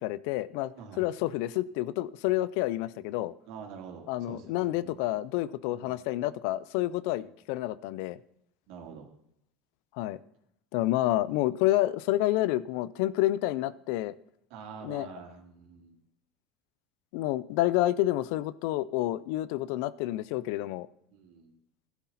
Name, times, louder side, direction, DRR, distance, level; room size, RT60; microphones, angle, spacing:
voice 1, 0.0-0.7 1.0-3.3 4.1-8.2 10.0-10.2 10.7-14.1 14.8-15.1 17.1-20.9, left 15 dB, 70° left, 19 dB, 0.6 m, -29 dB
voice 2, 0.8-1.1 3.5-5.0 5.7-6.0 7.1-7.2 8.7-9.1 14.5-16.0 21.1-21.5, right 6 dB, 65° right, 1 dB, 3.4 m, -46 dB
15.5 x 11.5 x 4.2 m, 0.71 s
supercardioid pair, 140°, 0 cm